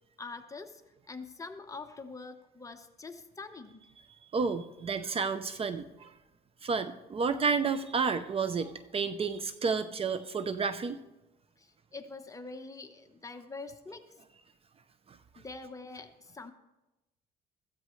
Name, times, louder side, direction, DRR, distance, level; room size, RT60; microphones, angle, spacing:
voice 1, 0.2-0.8 1.1-3.9 11.6-14.1 15.4-16.5, left 3 dB, 20° left, 6 dB, 1.0 m, -44 dB
voice 2, 4.3-6.1 6.6-11.0, right 5 dB, 35° right, 11 dB, 0.7 m, -31 dB
16.0 x 14.0 x 3.2 m, 0.99 s
cardioid pair, 110°, 17 cm